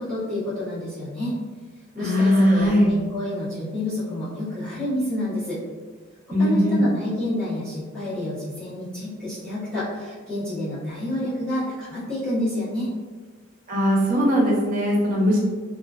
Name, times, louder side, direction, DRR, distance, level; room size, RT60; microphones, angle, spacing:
voice 1, 0.0-1.4 1.9-5.6 6.4-12.9, left 1 dB, 5° left, -16 dB, 0.9 m, -29 dB
voice 2, 2.0-3.0 6.3-6.8 13.7-15.4, equal, 40° right, -4 dB, 0.6 m, -19 dB
2.3 x 2.3 x 2.3 m, 1.4 s
head